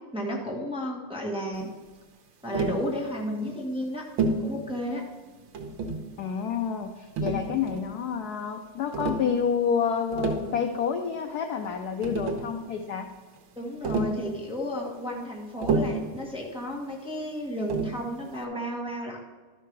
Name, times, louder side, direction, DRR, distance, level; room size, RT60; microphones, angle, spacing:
voice 1, 0.1-1.7 2.4-4.0 4.4-5.0 13.5-19.2, equal, 5° right, -2 dB, 1.1 m, -33 dB
Tap, 2.5-2.9 4.2-4.5 5.5-6.1 7.2-7.9 8.9-9.3 10.0-10.5 11.7-11.8 12.0-12.5 13.8-14.2 15.6-16.1 17.7-18.0, right 3 dB, 70° right, 1.8 m, -28 dB
voice 2, 6.2-13.1, left 7 dB, 80° left, 6 dB, 0.8 m, -29 dB
12.5 x 5.8 x 4.6 m, 1.4 s
omnidirectional pair, 2.3 m